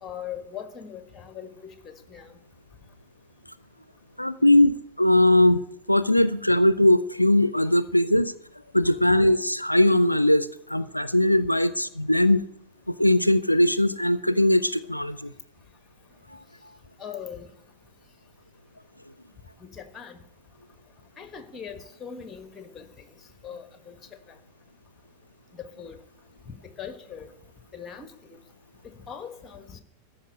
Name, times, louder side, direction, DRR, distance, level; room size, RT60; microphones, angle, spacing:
voice 1, 0.0-2.4 17.0-17.5 19.6-20.2 21.2-23.0 23.4-24.0 24.3-24.4 25.5-26.0 26.4-27.3 27.7-28.1 28.8-29.8, left 8 dB, 20° left, 10 dB, 1.4 m, -40 dB
voice 2, 4.2-8.3 8.7-12.4 12.9-15.3, left 1 dB, 90° left, 15 dB, 0.4 m, -20 dB
13.5 x 5.4 x 8.6 m, 0.73 s
figure-of-eight pair, 90°, 0 cm